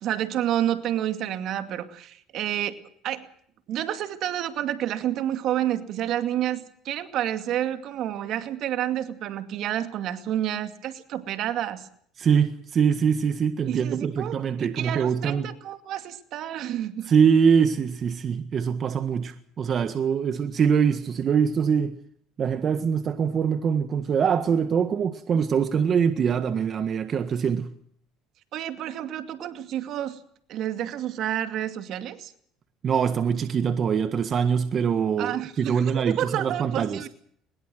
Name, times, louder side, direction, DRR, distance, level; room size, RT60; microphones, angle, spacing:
voice 1, 0.0-2.8 3.0-3.3 3.7-11.9 13.7-17.1 28.5-30.2 30.5-32.3 35.2-37.1, right 11 dB, 60° right, 2.3 m, -29 dB
voice 2, 12.2-15.5 17.1-21.9 22.4-27.7 32.8-37.0, right 7 dB, 40° right, 1.7 m, -23 dB
22.0 x 21.0 x 6.3 m
supercardioid pair, 95°, 0 cm